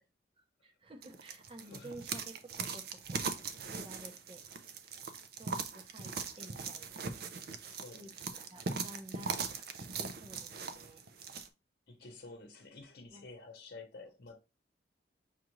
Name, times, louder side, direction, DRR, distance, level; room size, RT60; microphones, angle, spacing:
voice 1, 0.4-3.2 3.7-4.4 4.8-4.9 5.4-7.0 7.9-8.1 8.4-9.3 9.6-11.0 13.1-13.3, right 1 dB, 30° right, 0.8 m, -52 dB
sound 1, 1.0-11.5, right 5 dB, 60° right, 0.5 m, -40 dB
voice 2, 7.7-8.1 11.9-14.4, left 3 dB, 60° left, 0.9 m, -50 dB
5.9 x 2.5 x 3.0 m
head